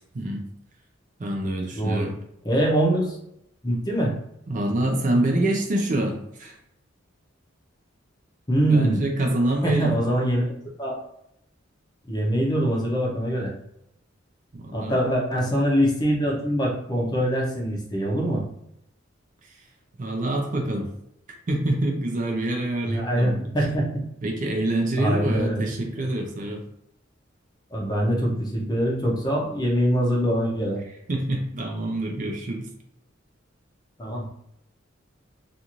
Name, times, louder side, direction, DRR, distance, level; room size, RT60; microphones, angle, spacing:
voice 1, 0.1-0.5 1.2-2.1 4.5-6.6 8.7-10.0 14.5-15.0 19.5-19.6 20.0-20.9 21.5-23.7 24.2-26.7 31.1-32.7, right 1 dB, 40° right, 2 dB, 0.4 m, -26 dB
voice 2, 1.7-2.1 2.4-3.2 3.6-4.1 8.5-9.0 9.6-10.5 10.8-10.9 12.1-13.5 14.7-18.4 22.8-24.0 25.0-25.7 27.7-30.8 34.0-34.3, right 1 dB, 20° left, -2 dB, 0.6 m, -23 dB
2.5 x 2.4 x 2.9 m, 0.75 s
head